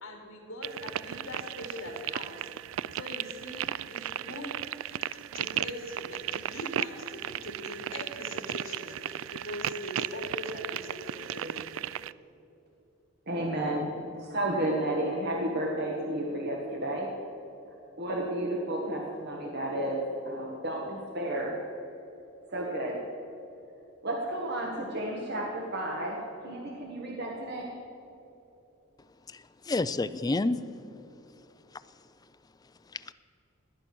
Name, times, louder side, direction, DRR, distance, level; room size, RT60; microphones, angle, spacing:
voice 1, 0.0-4.6 4.9-5.0 5.3-11.9, left 1 dB, 70° left, 1 dB, 3.2 m, -42 dB
sound 1, 0.6-12.1, right 11 dB, 70° right, 0.3 m, -36 dB
voice 2, 13.3-17.1 18.0-21.6 22.5-23.0 24.0-27.7, right 1 dB, 50° right, -1 dB, 1.5 m, -32 dB
voice 3, 29.3-30.6 32.9-33.1, left 2 dB, 20° left, 12 dB, 0.4 m, -29 dB
18.0 x 10.0 x 6.1 m, 3.0 s
head